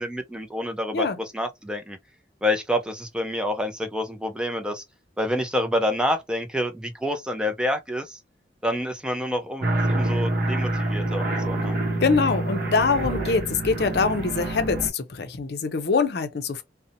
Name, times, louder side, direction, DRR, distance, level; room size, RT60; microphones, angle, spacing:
voice 1, 0.0-2.0 2.4-4.8 5.2-8.2 8.6-11.7, left 1 dB, 5° right, 0.3 m, -28 dB
sound 1, 9.6-14.9, right 2 dB, 55° right, 0.8 m, -26 dB
voice 2, 12.0-16.6, left 4 dB, 60° left, 0.5 m, -24 dB
2.6 x 2.0 x 2.6 m
head